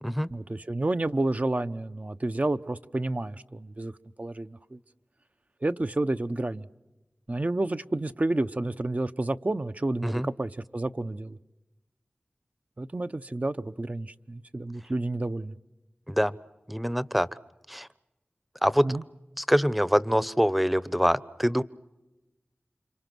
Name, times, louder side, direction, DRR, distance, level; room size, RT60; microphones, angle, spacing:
voice 1, 0.3-3.9 4.2-4.8 5.6-6.7 7.3-11.4 12.8-15.6 18.8-19.0, right 2 dB, 40° right, 10 dB, 0.9 m, -30 dB
voice 2, 16.7-17.3 17.7-17.9 18.6-18.9 19.4-21.6, equal, ahead, 17 dB, 0.9 m, -24 dB
29.5 x 27.0 x 6.2 m, 1.0 s
wide cardioid pair, 55°, 4 cm